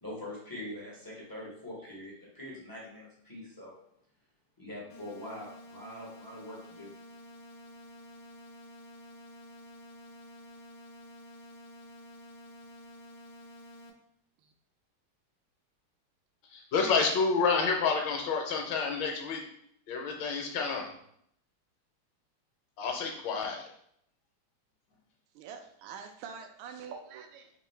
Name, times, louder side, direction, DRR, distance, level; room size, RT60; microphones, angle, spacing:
voice 1, 0.0-3.7 4.6-6.9, left 1 dB, 35° left, -6 dB, 0.3 m, -43 dB
sound 1, 4.9-13.9, left 1 dB, 85° left, 0.8 m, -51 dB
voice 2, 16.4-19.5 19.9-20.9 22.8-23.7, left 5 dB, 70° left, 2 dB, 1.3 m, -29 dB
voice 3, 25.3-27.5, right 6 dB, 75° right, 5 dB, 1.3 m, -45 dB
3.7 x 2.7 x 4.3 m, 0.71 s
omnidirectional pair, 2.4 m